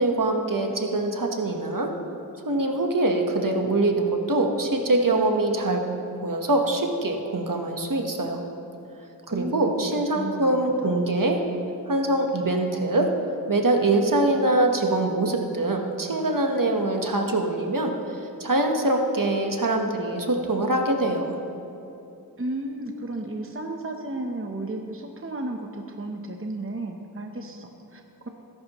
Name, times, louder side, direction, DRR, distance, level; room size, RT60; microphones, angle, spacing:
voice 1, 0.0-1.9 2.4-5.8 6.1-8.4 9.3-11.4 11.9-13.2 13.5-21.4, right 2 dB, 60° right, 3 dB, 1.2 m, -24 dB
voice 2, 10.0-10.5 10.8-10.9 22.4-28.3, right 2 dB, 35° right, 3 dB, 0.9 m, -33 dB
19.5 x 11.0 x 3.0 m, 2.8 s
wide cardioid pair, 50°, 37 cm